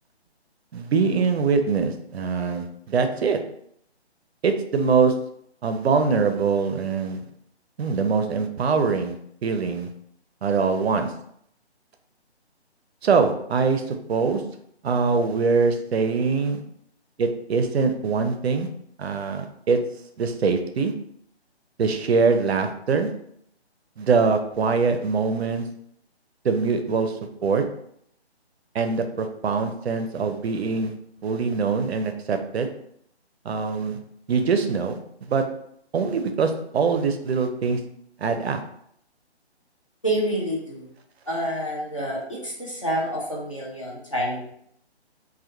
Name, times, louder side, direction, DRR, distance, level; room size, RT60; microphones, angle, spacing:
voice 1, 0.7-3.4 4.4-5.1 5.6-7.2 7.8-9.2 9.4-9.9 10.4-11.1 13.0-14.4 14.8-16.6 17.2-18.7 19.0-19.8 20.2-20.9 21.8-23.1 24.0-25.7 26.4-27.6 28.7-30.9 31.2-32.7 33.5-34.0 34.3-35.4 35.9-37.8 38.2-38.6, right 5 dB, 70° right, 7 dB, 0.5 m, -23 dB
voice 2, 40.0-40.9 41.3-44.4, right 1 dB, 30° left, -4 dB, 0.4 m, -28 dB
2.2 x 2.2 x 2.8 m, 0.70 s
hypercardioid pair, 170°, 33 cm